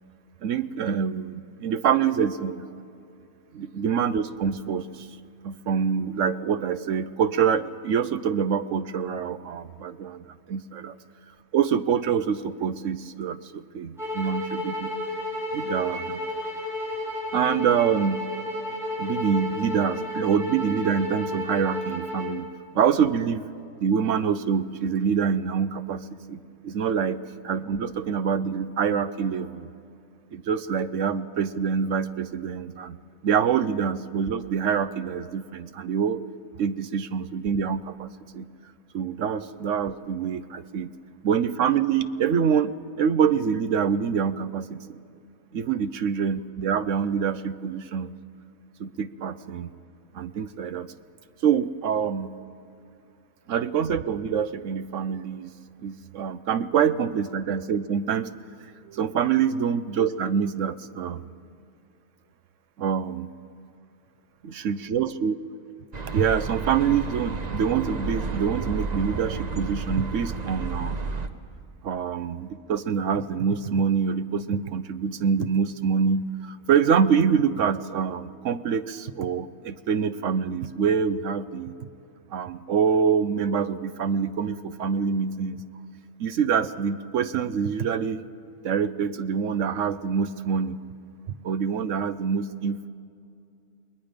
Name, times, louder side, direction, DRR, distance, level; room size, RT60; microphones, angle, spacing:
voice 1, 0.4-2.7 3.5-5.1 5.4-11.0 11.5-14.9 15.5-16.3 17.3-18.2 19.0-22.5 22.7-23.5 23.8-29.7 30.3-33.0 33.2-36.2 36.6-38.5 38.9-40.9 41.2-45.0 45.5-48.1 48.8-49.7 50.1-50.9 51.4-52.3 53.5-55.5 55.8-58.3 58.8-61.2 62.8-63.3 64.4-65.4 66.1-71.0 71.8-81.8 82.3-85.6 86.2-88.2 88.6-90.8 91.4-92.9, right 7 dB, 65° right, 12 dB, 1.0 m, -25 dB
sound 1, 14.0-22.3, left 1 dB, ahead, 7.4 m, -32 dB
sound 2, 65.9-71.3, right 4 dB, 35° right, 0.8 m, -31 dB
29.0 x 20.5 x 5.2 m, 2.5 s
omnidirectional pair, 1.6 m